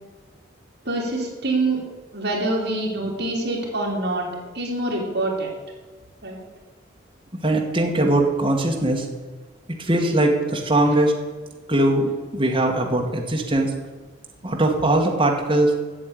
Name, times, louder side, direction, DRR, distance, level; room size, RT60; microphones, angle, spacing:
voice 1, 0.8-1.8 2.1-4.3 4.5-5.5 6.2-6.4 10.8-11.0, right 2 dB, 55° right, -2 dB, 3.1 m, -25 dB
voice 2, 7.4-9.1 9.8-11.1 11.7-13.7 14.4-15.7, right 1 dB, 25° right, 0 dB, 1.3 m, -20 dB
8.7 x 7.3 x 8.9 m, 1.3 s
head